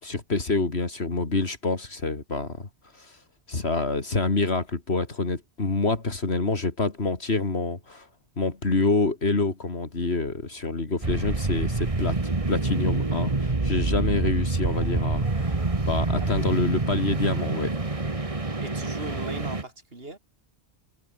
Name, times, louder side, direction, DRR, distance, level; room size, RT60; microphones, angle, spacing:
voice 1, 0.0-2.7 2.9-3.2 3.5-8.1 8.4-12.2 12.5-17.8, left 3 dB, 75° left, 3.1 m, -27 dB
sound 1, 11.0-19.6, right 3 dB, 30° right, 1.8 m, -27 dB
voice 2, 18.6-20.2, right 2 dB, 65° right, 4.1 m, -39 dB
omnidirectional pair, 1.1 m